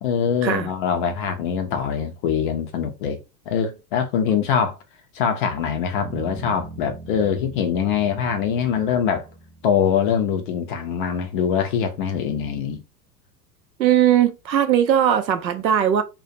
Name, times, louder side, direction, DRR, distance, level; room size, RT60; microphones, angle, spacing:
voice 1, 0.0-3.2 3.5-4.8 5.1-9.3 9.6-12.8, left 7 dB, 35° left, 0.4 m, -23 dB
sound 1, 6.0-10.4, right 3 dB, 35° right, 0.7 m, -41 dB
voice 2, 13.8-16.0, right 10 dB, 85° right, 0.6 m, -19 dB
2.4 x 2.1 x 2.6 m
figure-of-eight pair, 95°, 50 cm